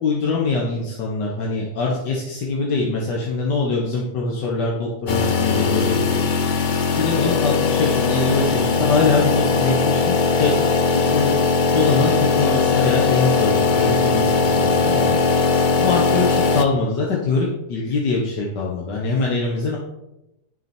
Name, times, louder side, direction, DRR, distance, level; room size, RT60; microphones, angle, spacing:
voice 1, 0.0-6.2 6.9-10.5 10.9-11.3 11.7-15.2 15.8-19.8, left 3 dB, 85° left, -3 dB, 2.0 m, -23 dB
sound 1, 5.1-16.6, left 4 dB, 70° left, 0.4 m, -19 dB
12.0 x 6.6 x 4.4 m, 0.92 s
omnidirectional pair, 1.8 m